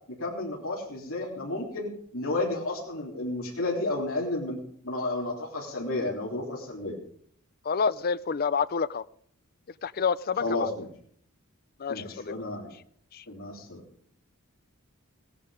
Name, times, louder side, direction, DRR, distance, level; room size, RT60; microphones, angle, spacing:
voice 1, 0.1-7.0 10.4-10.9 11.9-12.7 13.3-13.8, left 2 dB, 65° left, -2 dB, 3.7 m, -32 dB
voice 2, 7.6-9.0 9.8-10.7 11.8-12.3 13.1-13.2, left 5 dB, 45° left, 16 dB, 0.5 m, -28 dB
17.0 x 11.0 x 5.1 m, 0.62 s
head